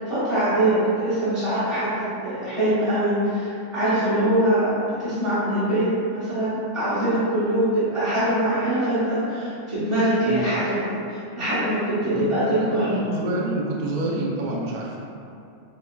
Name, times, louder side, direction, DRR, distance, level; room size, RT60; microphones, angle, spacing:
voice 1, 0.1-13.0, right 1 dB, 30° right, -13 dB, 0.6 m, -23 dB
voice 2, 12.9-15.0, right 2 dB, 85° right, -3 dB, 0.4 m, -27 dB
5.0 x 2.1 x 2.3 m, 2.6 s
omnidirectional pair, 1.4 m